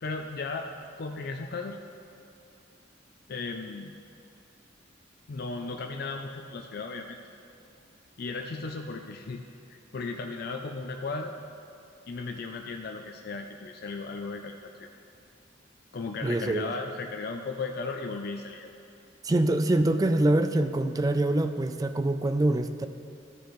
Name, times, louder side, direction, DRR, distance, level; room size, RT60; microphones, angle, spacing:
voice 1, 0.0-0.7 1.0-1.8 3.3-3.9 5.3-7.2 8.2-9.4 9.7-11.3 12.1-14.9 15.9-18.7, left 3 dB, 55° left, 3 dB, 0.4 m, -36 dB
voice 2, 16.2-16.7 19.2-22.9, right 1 dB, 20° right, 8 dB, 0.3 m, -25 dB
13.5 x 7.0 x 3.1 m, 2.6 s
head